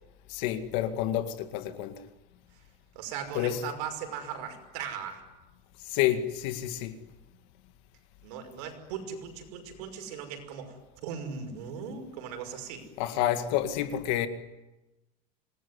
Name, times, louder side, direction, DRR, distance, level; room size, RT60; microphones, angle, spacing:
voice 1, 0.3-2.1 3.3-3.6 5.8-7.0 13.0-14.3, left 12 dB, 55° left, 2.1 m, -29 dB
voice 2, 2.9-5.2 8.2-12.9, right 7 dB, 70° right, 5.7 m, -38 dB
27.0 x 20.0 x 9.8 m
cardioid pair, 180°, 21 cm